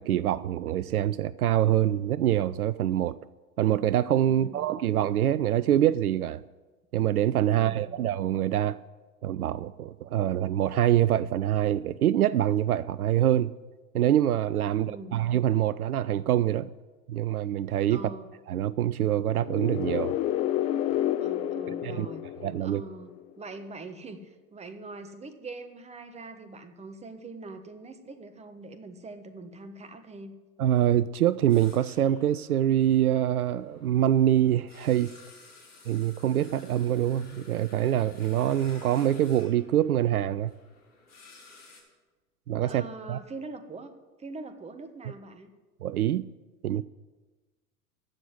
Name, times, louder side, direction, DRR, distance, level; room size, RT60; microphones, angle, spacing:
voice 1, 0.0-3.2 3.6-6.4 6.9-8.8 9.2-13.5 13.9-16.7 17.1-18.0 18.5-20.1 21.8-22.1 22.4-22.8 30.6-35.1 35.9-40.5 42.5-43.2 45.8-46.3 46.6-46.8, right 11 dB, 75° right, 0.5 m, -25 dB
voice 2, 4.2-4.7 7.5-8.0 14.8-15.2 17.9-18.3 21.2-22.2 22.6-30.3 42.6-43.9 44.2-45.5, right 3 dB, 15° right, 1.3 m, -43 dB
sound 1, 19.3-23.1, left 12 dB, 15° left, 0.3 m, -30 dB
sound 2, 31.5-41.8, left 3 dB, 85° left, 4.0 m, -54 dB
15.0 x 6.5 x 9.5 m
figure-of-eight pair, 90°, 45 cm